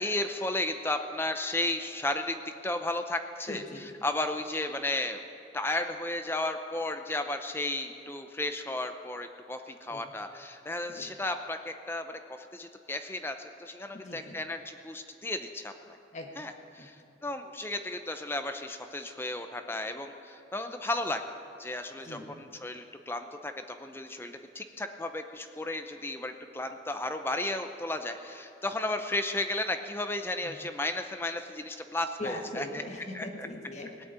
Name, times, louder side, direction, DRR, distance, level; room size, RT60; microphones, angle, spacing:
voice 1, 0.0-3.6 4.0-5.2 5.5-15.7 16.4-17.0 17.2-21.2 21.6-32.6 33.1-33.2, left 2 dB, 10° left, 7 dB, 0.6 m, -34 dB
voice 2, 3.5-3.8 9.9-10.1 10.9-11.1 13.9-14.4 16.1-16.3 16.8-16.9 22.0-22.4 30.4-30.5 32.2-34.1, left 1 dB, 40° left, 2 dB, 1.6 m, -41 dB
18.0 x 8.3 x 8.9 m, 2.6 s
head